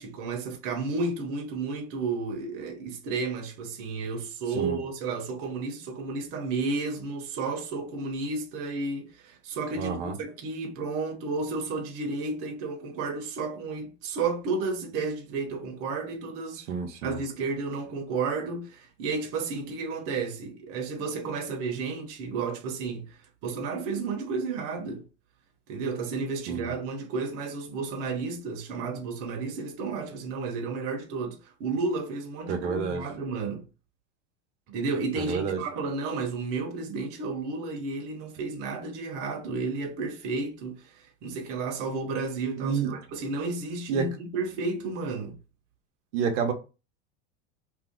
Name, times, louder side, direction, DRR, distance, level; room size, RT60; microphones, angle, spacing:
voice 1, 0.0-16.6 17.0-25.0 25.7-33.6 34.7-45.4, right 4 dB, 40° right, 0.9 m, -32 dB
voice 2, 9.7-10.1 16.7-17.2 26.5-26.7 32.5-33.0 35.2-35.6 42.6-43.0 43.9-44.1 46.1-46.5, right 6 dB, 85° right, 0.8 m, -29 dB
2.7 x 2.3 x 3.6 m
supercardioid pair, 145°, 35 cm